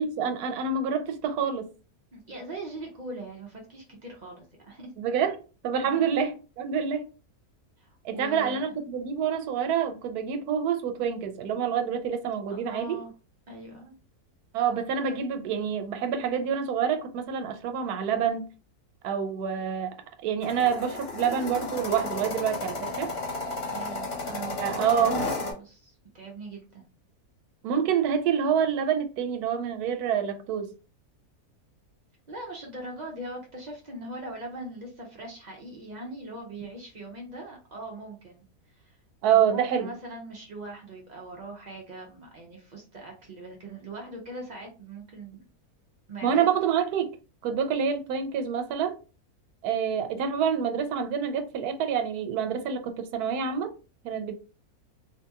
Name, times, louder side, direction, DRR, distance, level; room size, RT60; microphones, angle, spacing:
voice 1, 0.0-1.7 5.0-7.1 8.0-13.0 14.5-18.4 19.0-20.0 20.2-23.1 24.6-25.3 27.6-30.7 39.2-39.9 46.2-47.2 47.4-49.0 49.6-53.7 54.0-54.3, right 7 dB, 85° right, 1.1 m, -27 dB
voice 2, 2.1-4.9 5.8-6.1 7.8-8.8 12.5-13.1 13.5-13.9 23.7-25.1 25.4-26.9 32.3-38.5 38.7-39.0 39.3-45.4 46.1-46.5, right 1 dB, 70° right, 0.4 m, -41 dB
sound 1, 20.4-25.5, left 3 dB, 50° left, 1.0 m, -33 dB
2.8 x 2.6 x 2.2 m
omnidirectional pair, 1.6 m